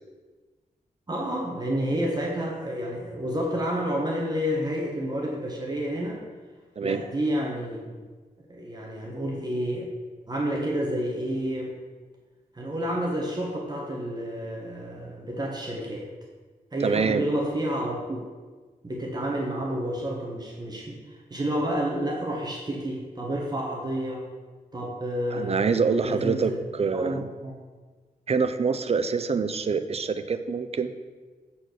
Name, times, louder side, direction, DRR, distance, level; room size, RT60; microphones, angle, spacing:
voice 1, 1.1-6.2 6.8-8.0 8.5-9.9 10.3-11.8 12.5-16.1 16.7-18.2 18.8-24.3 24.7-25.7 26.0-26.6 26.9-27.5, equal, 25° right, -2 dB, 1.3 m, -30 dB
voice 2, 16.8-17.3 25.3-27.2 28.3-30.9, right 5 dB, 45° right, 11 dB, 0.5 m, -25 dB
7.6 x 4.3 x 6.5 m, 1.4 s
wide cardioid pair, 100°, 15 cm